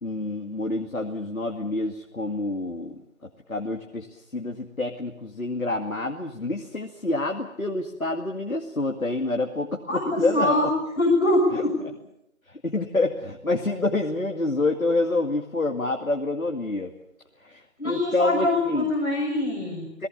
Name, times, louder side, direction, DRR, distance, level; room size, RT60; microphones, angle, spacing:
voice 1, 0.0-3.0 3.5-4.1 4.3-10.6 11.5-11.6 12.6-16.9 17.4-18.9 20.0-20.1, left 2 dB, 80° left, 2 dB, 2.3 m, -27 dB
voice 2, 9.9-10.7 11.0-11.7 17.8-19.9, left 1 dB, 60° left, -1 dB, 6.3 m, -23 dB
29.5 x 18.5 x 7.2 m, 0.82 s
figure-of-eight pair, 175°, 41 cm